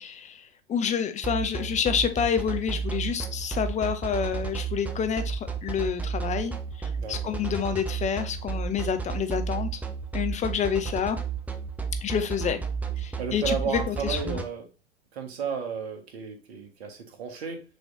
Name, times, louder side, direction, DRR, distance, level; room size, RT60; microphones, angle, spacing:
voice 1, 0.0-9.8 10.1-11.2 12.0-12.6 13.0-14.4, left 8 dB, 20° left, 8 dB, 0.7 m, -28 dB
sound 1, 1.2-14.4, right 6 dB, 5° right, 0.3 m, -31 dB
voice 2, 7.0-7.3 13.2-14.7 15.1-17.6, right 6 dB, 60° right, 4 dB, 1.5 m, -33 dB
6.2 x 3.2 x 2.7 m, 0.32 s
figure-of-eight pair, 95°, 35 cm